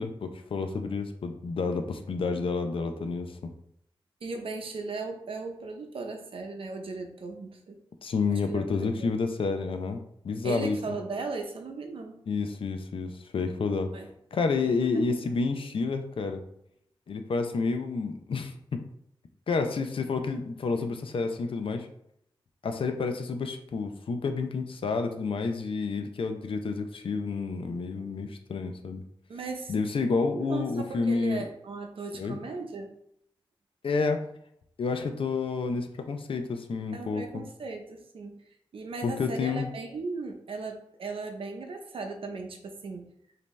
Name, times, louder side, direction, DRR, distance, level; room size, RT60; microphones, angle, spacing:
voice 1, 0.0-3.5 8.0-10.8 12.3-13.9 14.3-16.4 17.1-18.8 19.5-21.9 22.6-29.0 29.7-31.4 32.2-32.4 33.8-34.3 34.8-37.4 39.0-39.7, left 4 dB, 70° left, 6 dB, 0.5 m, -29 dB
voice 2, 4.2-7.8 8.3-9.1 10.4-12.2 13.9-14.1 14.6-15.1 15.4-15.5 29.3-29.7 30.4-32.9 36.9-38.4 38.7-43.1, right 3 dB, 80° right, 4 dB, 0.7 m, -37 dB
5.2 x 2.8 x 3.2 m, 0.73 s
wide cardioid pair, 140°, 9 cm